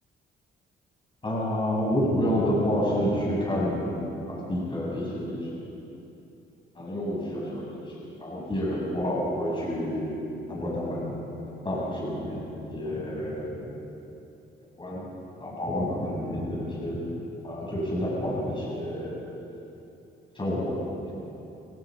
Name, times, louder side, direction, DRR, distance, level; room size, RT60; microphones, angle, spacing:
voice 1, 1.2-5.4 6.8-7.8 8.2-10.2 10.5-11.2 11.6-13.6 14.8-15.1 15.4-17.0 17.4-19.2 20.3-21.1, equal, 25° left, -5 dB, 7.9 m, -29 dB
27.5 x 25.5 x 5.4 m, 2.9 s
cardioid pair, 90°, 20 cm